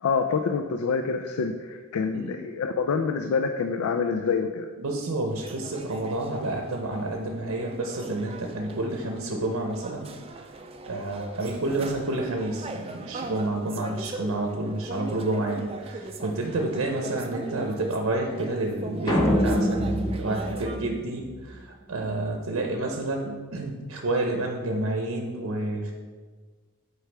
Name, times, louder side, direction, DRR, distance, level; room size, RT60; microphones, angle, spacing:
voice 1, 0.0-4.7, left 5 dB, 85° left, 7 dB, 0.4 m, -26 dB
voice 2, 4.8-10.1 10.9-21.6 21.9-25.9, right 2 dB, 75° right, 2 dB, 0.7 m, -29 dB
sound 1, 5.4-20.8, right 2 dB, 25° right, 0.4 m, -39 dB
sound 2, 19.1-21.5, equal, 20° left, 0.7 m, -25 dB
7.8 x 4.6 x 3.4 m, 1.4 s
head